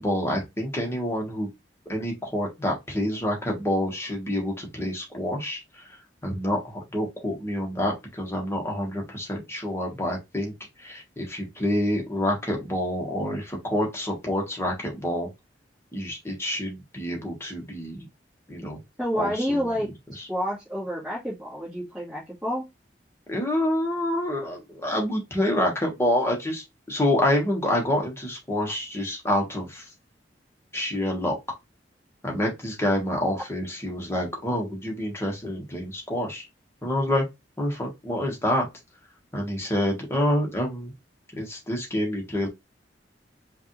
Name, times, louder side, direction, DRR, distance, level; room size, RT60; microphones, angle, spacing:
voice 1, 0.0-1.5 1.8-6.0 6.2-10.5 10.8-15.3 15.9-18.1 18.5-18.8 19.2-19.9 20.2-20.3 23.3-29.9 30.7-31.4 32.2-36.5 36.8-37.2 37.6-38.7 39.3-40.9 41.3-42.5, left 1 dB, 15° left, 1.4 m, -27 dB
voice 2, 19.0-19.9 20.3-22.6, equal, 5° right, 1.8 m, -29 dB
5.1 x 2.6 x 3.1 m
head